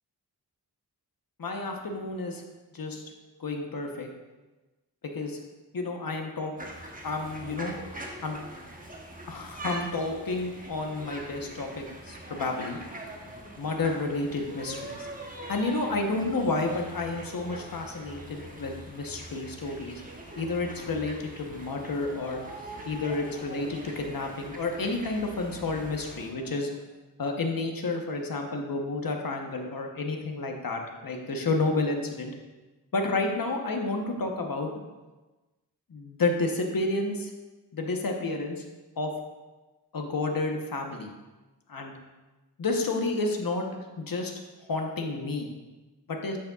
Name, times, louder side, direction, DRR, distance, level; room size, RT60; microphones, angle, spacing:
voice 1, 1.4-2.4 2.7-3.0 3.4-4.1 5.1-5.4 5.7-6.5 7.0-7.7 8.2-8.4 9.3-12.8 13.6-15.1 15.5-20.0 20.4-22.4 22.8-26.7 27.2-32.4 32.9-34.7 35.9-37.3 37.7-38.6 39.0-39.1 39.9-41.1 41.7-41.9 42.6-43.6 44.0-44.3 44.6-45.5 46.1-46.4, left 3 dB, 55° left, 3 dB, 1.0 m, -30 dB
sound 1, 6.6-26.3, right 1 dB, 20° right, 1.1 m, -43 dB
8.1 x 6.6 x 2.4 m, 1.2 s
wide cardioid pair, 65°, 40 cm